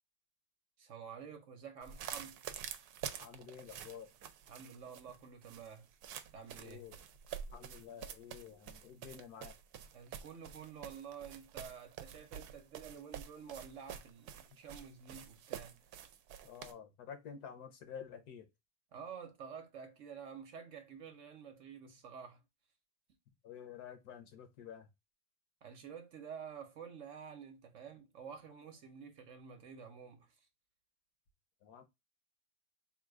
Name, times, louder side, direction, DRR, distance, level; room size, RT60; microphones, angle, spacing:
voice 1, 0.8-2.4 4.5-5.9 6.3-6.8 9.9-15.8 18.9-22.4 25.6-30.4, right 7 dB, 60° right, 1.1 m, -50 dB
sound 1, 1.8-16.7, right 9 dB, 80° right, 1.1 m, -48 dB
voice 2, 3.2-4.1 6.6-7.0 7.5-9.6 16.4-18.5 23.4-24.9 31.6-31.8, left 8 dB, 80° left, 1.4 m, -50 dB
3.8 x 2.4 x 4.6 m
omnidirectional pair, 1.6 m